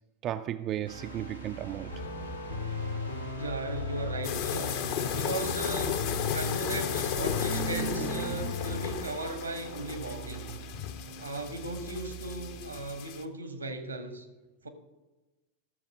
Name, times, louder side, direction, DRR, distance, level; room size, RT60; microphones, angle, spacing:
voice 1, 0.2-2.0 7.4-8.6, right 12 dB, 35° right, 0.3 m, -35 dB
sound 1, 0.9-12.9, right 4 dB, 85° left, 1.3 m, -44 dB
sound 2, 1.9-9.0, left 4 dB, 70° left, 1.2 m, -36 dB
voice 2, 3.4-4.7 5.1-6.0 6.3-10.6 11.2-14.3 14.6-14.7, right 2 dB, 80° right, 1.2 m, -36 dB
sound 3, 4.2-13.2, left 9 dB, 50° left, 0.7 m, -35 dB
14.0 x 6.9 x 5.0 m
figure-of-eight pair, 90°, 0 cm